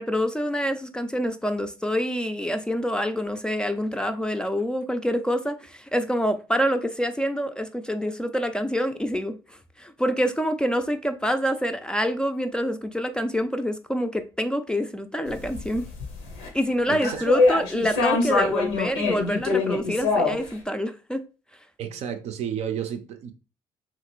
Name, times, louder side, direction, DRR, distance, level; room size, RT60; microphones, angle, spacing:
voice 1, 0.0-15.9 16.5-21.2, equal, 5° left, 0.4 m, -26 dB
sound 1, 15.3-16.5 16.9-20.5, left 3 dB, 85° left, 0.7 m, -24 dB
voice 2, 16.9-17.2 21.8-23.3, right 8 dB, 60° right, 0.5 m, -32 dB
2.9 x 2.5 x 3.0 m
hypercardioid pair, 55°, 12 cm